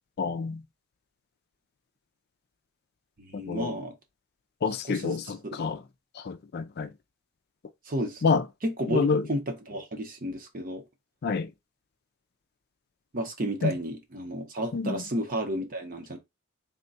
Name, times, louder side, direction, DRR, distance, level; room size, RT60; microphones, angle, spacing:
voice 1, 0.2-0.6 3.5-3.7 4.6-5.8 6.2-6.9 8.2-8.4 8.9-9.2 11.2-11.5 13.6-13.7 14.7-15.0, left 5 dB, 50° left, 0.4 m, -27 dB
voice 2, 3.2-3.9 4.8-5.6 7.9-8.2 8.6-10.8 13.1-16.2, right 1 dB, 40° right, 0.9 m, -32 dB
3.7 x 2.2 x 3.9 m
head